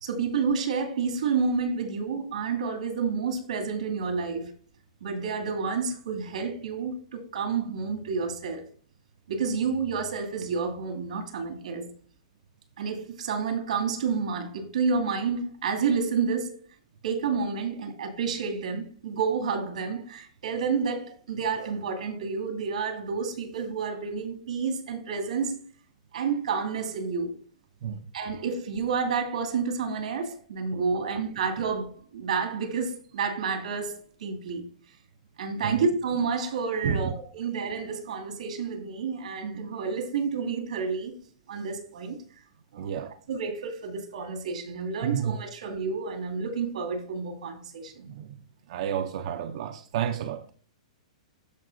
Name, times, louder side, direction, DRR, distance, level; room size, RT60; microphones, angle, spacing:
voice 1, 0.0-4.5 5.0-8.7 9.3-11.9 12.8-16.6 17.0-25.6 26.1-27.3 28.1-34.6 35.4-41.1 41.5-42.2 42.7-42.9 43.3-48.1, right 5 dB, 80° right, 2.5 m, -30 dB
voice 2, 42.8-43.1 45.0-45.4 48.1-48.3 48.7-50.5, right 8 dB, 50° right, 0.6 m, -30 dB
13.5 x 4.9 x 2.7 m
hypercardioid pair, 165°, 4 cm